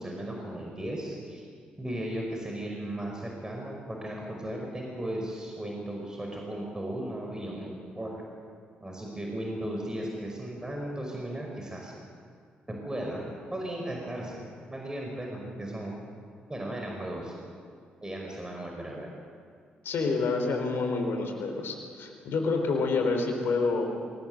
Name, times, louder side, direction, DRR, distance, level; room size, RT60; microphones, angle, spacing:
voice 1, 0.0-1.4 1.8-8.2 8.8-11.9 12.7-15.9 16.5-17.3 18.0-19.1, right 1 dB, 15° right, 0 dB, 5.4 m, -36 dB
voice 2, 19.8-23.9, left 4 dB, 65° left, 4 dB, 4.2 m, -28 dB
22.5 x 19.0 x 8.0 m, 2.1 s
hypercardioid pair, 45°, 4 cm